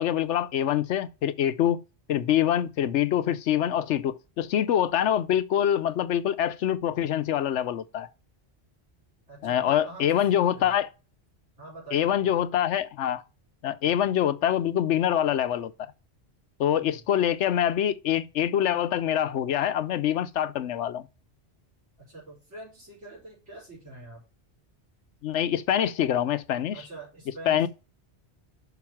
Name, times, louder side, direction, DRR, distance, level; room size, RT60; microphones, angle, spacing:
voice 1, 0.0-1.8 2.1-8.1 9.4-10.9 11.9-13.2 13.6-15.9 16.6-21.1 25.2-26.8 27.5-27.7, left 10 dB, 85° left, 1.0 m, -25 dB
voice 2, 9.3-10.7 11.6-12.4 16.7-17.0 22.0-24.2 26.7-27.7, right 2 dB, 90° right, 4.7 m, -45 dB
6.0 x 5.6 x 5.8 m
omnidirectional pair, 1.2 m